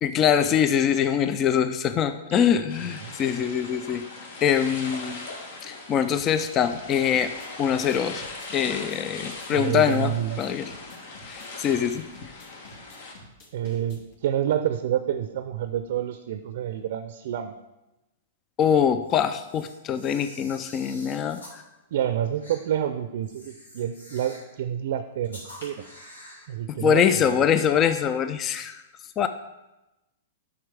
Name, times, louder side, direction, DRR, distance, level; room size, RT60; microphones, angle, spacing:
voice 1, 0.0-4.0 4.4-5.2 5.6-7.3 7.6-8.2 8.5-10.7 11.3-12.3 18.6-21.6 26.8-28.8 29.2-29.3, left 8 dB, 30° left, 10 dB, 0.4 m, -23 dB
sound 1, 2.7-13.1, left 3 dB, 65° left, 1.3 m, -40 dB
sound 2, 6.2-14.1, left 1 dB, 50° left, 1.8 m, -49 dB
voice 2, 9.5-10.4 13.5-17.5 21.9-25.8 26.5-27.4, right 10 dB, 65° right, 10 dB, 0.4 m, -28 dB
Camera, 19.0-21.6 22.4-22.6 23.2-24.5 25.2-26.5, left 1 dB, 90° left, 2.6 m, -47 dB
7.8 x 6.0 x 3.5 m, 0.99 s
hypercardioid pair, 120°, 0 cm